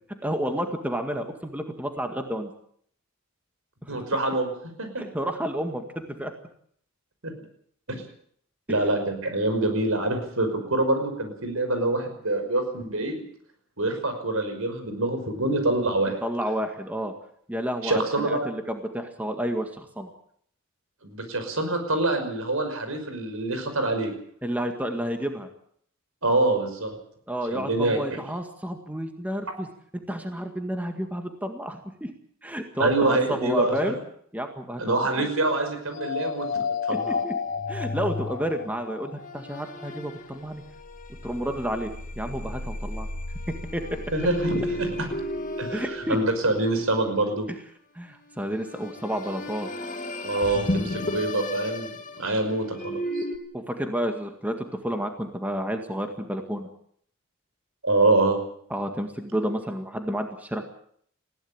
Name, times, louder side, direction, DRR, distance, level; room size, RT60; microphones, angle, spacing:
voice 1, 0.2-2.5 3.8-4.0 5.0-6.3 8.7-8.8 16.2-17.1 17.5-20.1 24.4-25.5 27.3-29.7 30.1-32.1 32.4-33.9 34.3-35.3 36.9-37.3 37.7-40.6 41.2-41.9 42.2-43.1 43.5-44.0 45.7-46.2 48.0-49.7 53.5-56.7 58.7-60.7, equal, 5° right, 5 dB, 1.9 m, -30 dB
voice 2, 3.9-4.5 4.8-5.0 7.2-7.3 7.9-8.0 8.7-13.2 13.8-16.2 17.8-18.5 21.0-24.1 26.2-27.0 27.5-28.2 32.8-34.0 34.8-37.2 44.1-45.1 45.6-47.5 50.2-51.9 52.2-53.2 57.8-58.4, right 2 dB, 75° right, 7 dB, 5.7 m, -25 dB
sound 1, 35.9-47.1 48.6-53.4, left 2 dB, 40° left, 2.3 m, -33 dB
20.5 x 16.0 x 8.8 m, 0.64 s
head